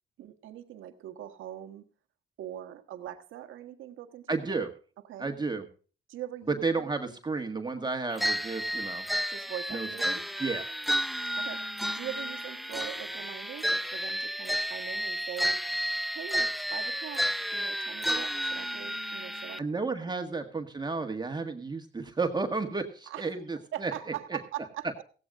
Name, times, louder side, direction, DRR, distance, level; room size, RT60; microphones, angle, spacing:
voice 1, 0.2-1.8 2.4-4.5 5.1-5.3 6.1-6.9 9.3-10.2 11.4-11.6 11.9-15.6 16.1-17.2 17.5-20.1 23.1-23.4 23.7-25.0, right 12 dB, 85° right, 7 dB, 1.5 m, -42 dB
voice 2, 4.3-4.7 5.2-5.7 6.5-9.0 9.7-10.7 19.6-23.9 24.3-24.4, right 4 dB, 20° right, 5 dB, 1.7 m, -32 dB
sound 1, 8.2-19.6, equal, ahead, 0.5 m, -32 dB
17.0 x 16.0 x 2.5 m, 0.38 s
cardioid pair, 90°, 20 cm